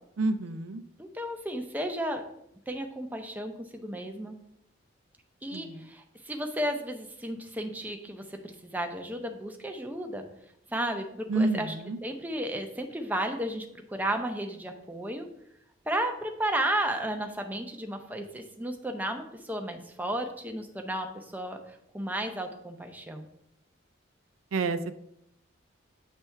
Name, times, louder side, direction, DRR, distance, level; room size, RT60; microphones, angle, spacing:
voice 1, 0.2-0.8 5.5-5.9 11.3-12.0 24.5-25.0, right 3 dB, 85° right, 11 dB, 0.5 m, -29 dB
voice 2, 1.0-2.2 2.7-4.4 5.4-10.3 10.7-11.7 12.0-15.3 15.9-23.3, right 1 dB, 10° right, 4 dB, 0.6 m, -33 dB
8.3 x 3.4 x 4.5 m, 0.77 s
head